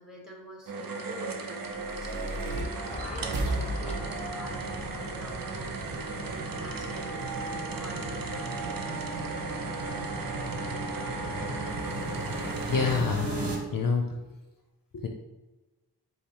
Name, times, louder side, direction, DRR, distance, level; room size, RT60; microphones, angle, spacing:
voice 1, 0.0-7.1 7.7-8.3, equal, ahead, -1 dB, 1.2 m, -47 dB
sound 1, 0.7-13.0, right 4 dB, 55° right, 0.6 m, -36 dB
sound 2, 1.5-13.6, right 2 dB, 80° right, 0.9 m, -36 dB
Car passing by / Traffic noise roadway noise, 2.9-7.5, left 1 dB, 15° left, 0.7 m, -43 dB
voice 2, 12.6-14.2 14.9-15.1, left 4 dB, 55° left, 3 dB, 0.5 m, -28 dB
5.2 x 2.0 x 4.4 m, 1.1 s
wide cardioid pair, 50°, 41 cm